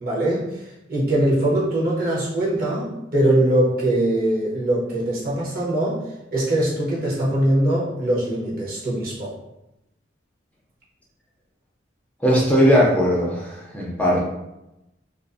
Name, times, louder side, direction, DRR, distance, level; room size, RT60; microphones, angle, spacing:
voice 1, 0.0-0.6 0.9-6.0 6.3-9.3, right 1 dB, 50° right, -6 dB, 0.7 m, -22 dB
voice 2, 12.2-14.2, equal, 5° left, -5 dB, 0.4 m, -18 dB
2.4 x 2.4 x 2.4 m, 0.91 s
head